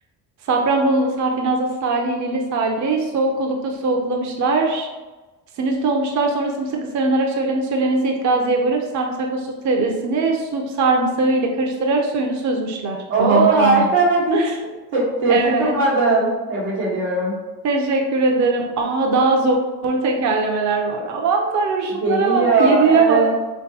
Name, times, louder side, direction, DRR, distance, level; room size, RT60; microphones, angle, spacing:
voice 1, 0.5-4.9 5.6-13.9 14.3-14.5 15.3-15.8 17.6-19.6 19.8-23.2, right 3 dB, 40° right, 2 dB, 0.5 m, -21 dB
voice 2, 13.1-14.4 14.9-17.3 22.0-23.4, right 3 dB, 80° right, -5 dB, 1.1 m, -18 dB
3.7 x 2.3 x 2.7 m, 1.2 s
hypercardioid pair, 50°, 48 cm